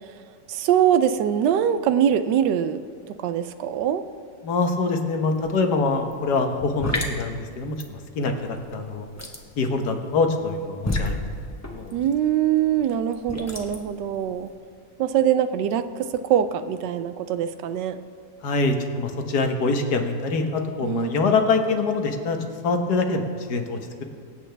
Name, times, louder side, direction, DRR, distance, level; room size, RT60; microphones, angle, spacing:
voice 1, 0.5-2.8 3.1-4.0 11.9-14.5 15.0-18.0 20.8-21.1, right 9 dB, 80° right, 11 dB, 1.2 m, -23 dB
voice 2, 4.4-9.1 9.6-11.2 11.7-11.9 18.4-22.4 22.6-24.0, left 3 dB, 65° left, 5 dB, 1.6 m, -24 dB
sound 1, 5.3-5.5 5.8-14.5, left 1 dB, 10° left, 0.8 m, -32 dB
24.5 x 8.5 x 3.4 m, 2.2 s
omnidirectional pair, 1.9 m